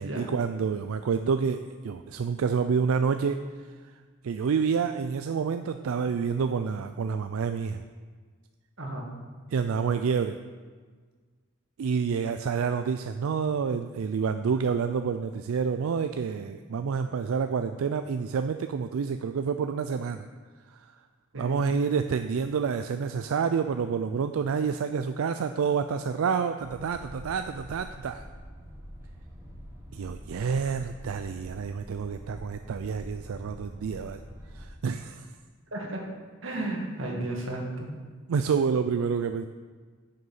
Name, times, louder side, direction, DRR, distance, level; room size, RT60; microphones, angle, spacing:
voice 1, 0.0-3.4 4.2-7.8 9.5-10.4 11.8-20.3 20.7-20.8 21.3-28.2 29.9-34.2 34.5-35.3 38.3-39.5, right 6 dB, 90° right, 9 dB, 0.4 m, -28 dB
voice 2, 8.8-9.1 21.3-21.6 35.7-36.0 36.4-37.9, right 1 dB, 65° right, 0 dB, 1.9 m, -33 dB
sound 1, 26.6-34.7, equal, 15° right, 1.4 m, -45 dB
9.2 x 6.6 x 5.6 m, 1.5 s
head